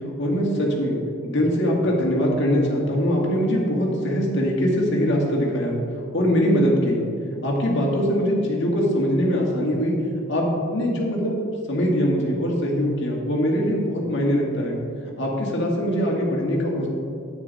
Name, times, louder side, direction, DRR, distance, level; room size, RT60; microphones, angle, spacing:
voice 1, 0.2-7.0 7.4-9.9 10.3-11.4 11.7-14.8 15.2-16.9, equal, 55° left, -2 dB, 2.0 m, -22 dB
9.8 x 9.1 x 4.1 m, 2.4 s
head